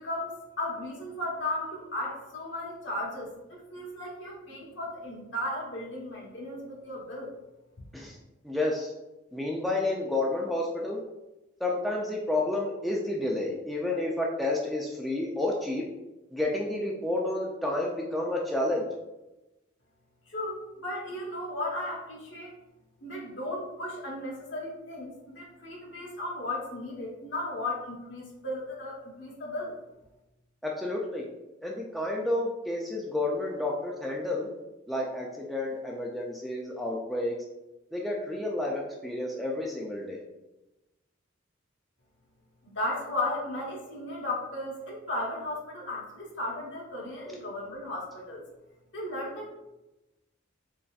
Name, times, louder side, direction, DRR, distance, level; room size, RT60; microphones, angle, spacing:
voice 1, 0.0-7.3 20.3-22.5 23.0-29.8 42.7-48.4 48.9-49.5, left 1 dB, 60° left, -3 dB, 1.0 m, -35 dB
voice 2, 8.4-8.9 9.3-11.0 11.6-15.8 16.3-18.9 30.6-31.3 31.6-34.5 34.9-37.4 37.9-40.2, left 2 dB, ahead, -3 dB, 0.3 m, -30 dB
3.9 x 3.3 x 2.3 m, 1.0 s
head